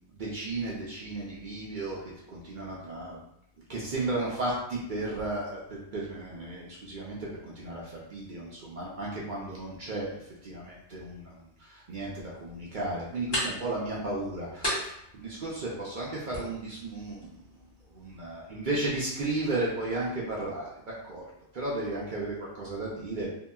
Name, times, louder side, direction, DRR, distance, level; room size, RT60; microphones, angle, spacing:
voice 1, 0.2-3.2 3.7-7.2 7.4-10.1 10.4-17.4 17.9-21.3 21.5-23.3, right 2 dB, 55° right, -5 dB, 0.6 m, -34 dB
sound 1, 12.3-19.3, equal, 20° left, 0.9 m, -39 dB
2.9 x 2.7 x 2.2 m, 0.77 s
omnidirectional pair, 1.3 m